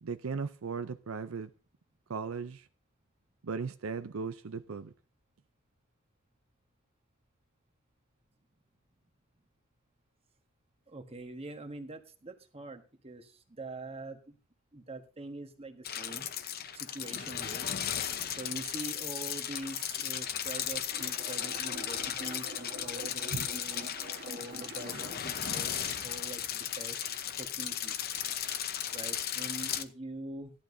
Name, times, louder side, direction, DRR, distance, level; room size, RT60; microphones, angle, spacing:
voice 1, 0.0-1.5 2.1-2.6 3.4-4.9 23.3-23.5, right 5 dB, 80° right, 0.6 m, -37 dB
voice 2, 10.9-14.4 14.7-16.3 16.7-17.7 18.3-23.9 24.2-27.1 27.4-28.0 28.9-30.5, right 2 dB, 30° right, 1.4 m, -44 dB
sound 1, 15.8-29.8, left 9 dB, 50° left, 0.9 m, -36 dB
sound 2, 20.6-25.4, right 2 dB, 50° right, 1.6 m, -47 dB
15.5 x 11.5 x 2.7 m
head